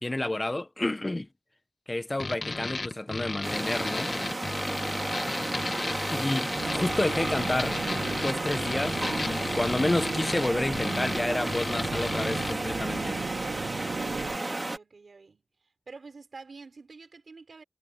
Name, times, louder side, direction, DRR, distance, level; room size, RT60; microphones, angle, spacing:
voice 1, 0.0-1.3 1.9-4.1 6.1-7.8 8.1-13.2, left 2 dB, 25° left, 1.3 m, -30 dB
sound 1, 2.2-12.6, left 3 dB, 50° left, 2.0 m, -34 dB
sound 2, 3.4-14.8, right 2 dB, 30° right, 2.3 m, -33 dB
sound 3, 6.6-14.4, right 5 dB, 90° right, 1.4 m, -36 dB
voice 2, 14.0-15.4 15.9-17.6, right 4 dB, 65° right, 4.0 m, -48 dB
wide cardioid pair, 70°, 0 cm